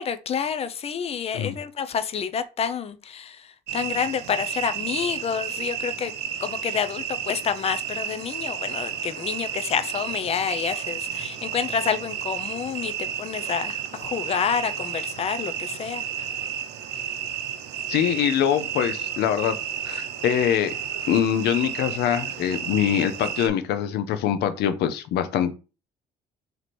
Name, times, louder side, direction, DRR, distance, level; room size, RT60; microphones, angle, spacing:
voice 1, 0.0-6.1 6.4-16.3, left 7 dB, 35° left, 0.5 m, -28 dB
sound 1, 3.7-23.5, right 9 dB, 80° right, 0.6 m, -32 dB
voice 2, 17.9-19.6 19.9-20.8 21.1-25.5, left 9 dB, 75° left, 0.6 m, -24 dB
3.1 x 2.9 x 4.1 m
cardioid pair, 110°, 17 cm